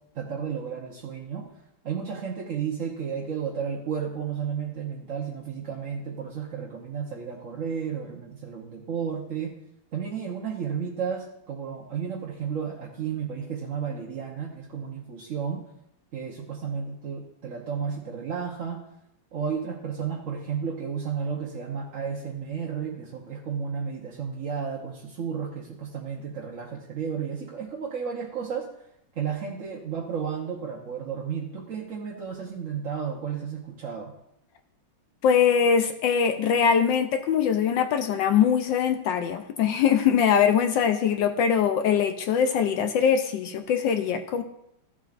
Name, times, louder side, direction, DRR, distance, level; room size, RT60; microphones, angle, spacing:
voice 1, 0.1-1.5 1.8-9.6 9.9-15.6 16.1-18.8 19.3-28.7 29.1-34.1, right 7 dB, 50° right, -3 dB, 1.1 m, -32 dB
voice 2, 35.2-44.4, left 7 dB, 75° left, 7 dB, 1.2 m, -22 dB
15.0 x 7.4 x 2.5 m, 0.78 s
omnidirectional pair, 2.3 m